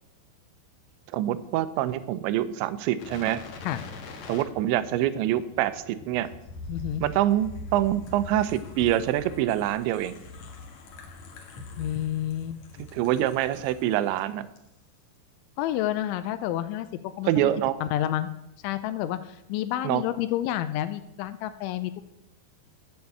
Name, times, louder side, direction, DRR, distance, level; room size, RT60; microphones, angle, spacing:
voice 1, 1.1-3.4 4.3-6.3 7.0-10.2 12.9-14.5 17.3-17.8 19.8-20.0, right 13 dB, 80° right, 14 dB, 2.8 m, -25 dB
sound 1, 3.0-14.2 14.6-14.7, left 3 dB, 65° left, 1.7 m, -43 dB
voice 2, 6.7-7.0 11.8-12.9 15.6-16.9 17.2-17.5 17.8-18.3 18.6-22.0, left 12 dB, 85° left, 11 dB, 2.9 m, -29 dB
12.5 x 7.1 x 7.7 m, 0.84 s
omnidirectional pair, 5.6 m